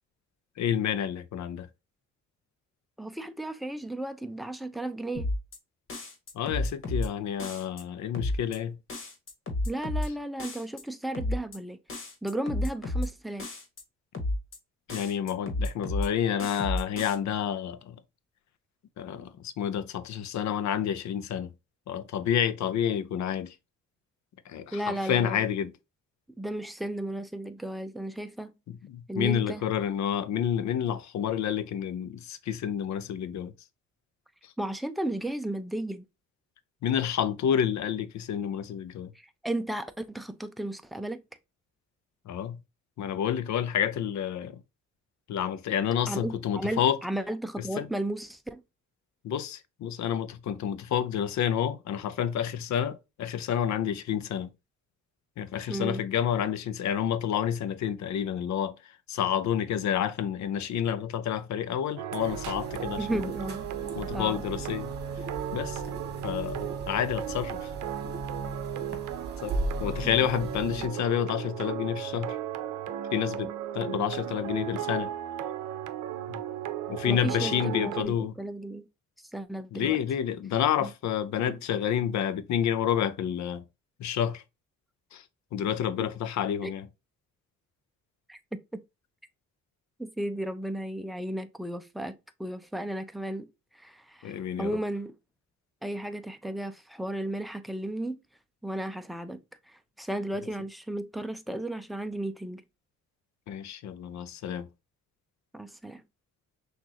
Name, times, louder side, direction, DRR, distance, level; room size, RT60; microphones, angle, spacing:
voice 1, 0.6-1.7 6.3-8.8 14.9-18.0 19.0-21.5 21.9-23.6 24.4-25.7 28.7-33.5 34.4-34.5 36.8-39.1 42.2-42.6 43.0-44.6 45.3-47.0 47.6-47.9 49.2-54.5 55.4-63.3 63.9-64.9 65.5-65.8 66.2-67.7 69.4-72.4 73.1-75.1 76.3-76.4 76.9-78.3 79.7-83.6 84.0-84.4 85.1-86.9 94.2-94.7 103.5-104.7, left 9 dB, 65° left, 0.7 m, -29 dB
voice 2, 3.0-5.3 9.6-11.8 12.2-13.5 24.7-25.4 26.4-28.6 29.1-29.6 34.6-36.0 39.1-41.2 46.1-48.6 55.7-56.0 63.0-63.6 64.1-64.4 70.0-70.3 70.7-70.8 77.0-78.9 79.3-80.0 80.8-80.9 81.5-81.6 86.6-86.7 88.3-88.4 90.0-95.1 95.8-98.2 98.6-102.6 105.5-106.0, right 1 dB, ahead, 0.5 m, -34 dB
sound 1, 5.1-5.6 5.9-7.1 7.4-7.8 8.1-8.6 8.9-10.1 10.4-10.8 11.1-11.6 11.9-13.1 13.4-13.8 14.1-14.6 14.9-16.1 16.4-17.1, left 1 dB, 45° left, 1.6 m, -31 dB
sound 2, 62.0-78.0, right 11 dB, 80° right, 0.6 m, -36 dB
sound 3, 62.2-70.9, right 2 dB, 35° right, 1.5 m, -37 dB
6.0 x 2.6 x 2.8 m
cardioid pair, 90°, 30 cm